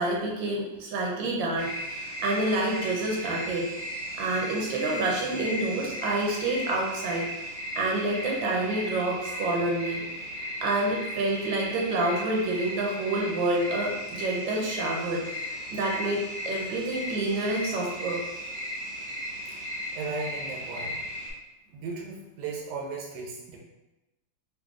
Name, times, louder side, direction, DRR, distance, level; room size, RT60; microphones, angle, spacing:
voice 1, 0.0-3.7 4.1-7.3 7.8-10.0 10.6-18.2, right 2 dB, 85° right, -2 dB, 1.4 m, -28 dB
sound 1, 1.6-21.3, equal, 25° right, 0.7 m, -36 dB
voice 2, 19.9-21.1 21.7-23.6, right 4 dB, 70° right, -1 dB, 1.2 m, -36 dB
3.9 x 3.0 x 2.4 m, 1.0 s
omnidirectional pair, 2.0 m